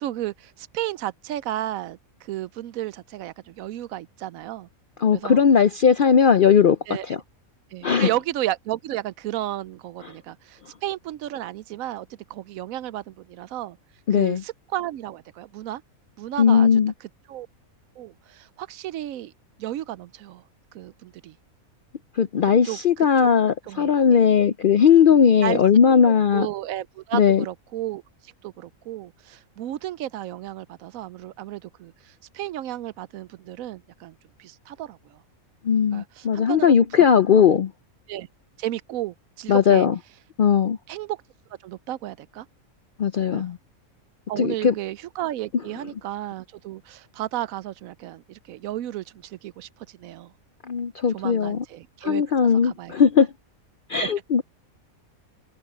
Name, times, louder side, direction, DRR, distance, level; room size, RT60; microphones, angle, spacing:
voice 1, 0.0-4.7 5.1-5.4 6.9-7.2 7.7-13.8 14.1-15.8 16.2-16.7 17.3-17.5 18.0-19.3 19.6-20.4 20.7-21.3 22.6-23.1 23.7-24.2 25.4-25.6 26.0-35.2 35.9-36.7 37.3-37.4 38.1-38.3 38.6-39.9 40.9-41.2 41.6-42.5 43.3-43.5 44.3-50.3 51.1-52.2 52.6-52.9 54.0-54.1, right 13 dB, 75° right, 1.0 m, -33 dB
voice 2, 5.0-6.8 7.0-7.2 7.8-8.1 10.0-10.1 14.1-14.4 16.4-16.9 22.2-26.5 27.1-27.4 35.6-37.7 39.5-40.0 40.4-40.8 43.0-43.6 44.4-44.7 50.7-51.6 52.0-53.3 53.9-54.4, left 7 dB, 60° left, 0.5 m, -18 dB
omnidirectional pair, 1.5 m